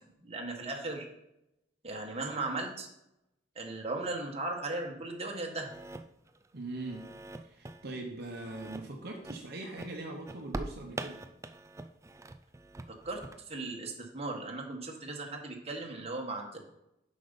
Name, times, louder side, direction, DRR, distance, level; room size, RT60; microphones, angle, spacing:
voice 1, 0.2-1.1 1.8-2.9 3.5-5.7 12.9-13.2 13.5-16.6, right 2 dB, 35° right, 1 dB, 1.4 m, -37 dB
sound 1, 5.6-6.5 6.7-7.9 8.3-8.9 9.2-9.5 9.8-13.4, right 2 dB, 15° right, 0.4 m, -43 dB
voice 2, 6.5-7.1 7.4-11.2, right 2 dB, 55° right, 1 dB, 1.0 m, -41 dB
7.6 x 5.4 x 5.3 m, 0.84 s
head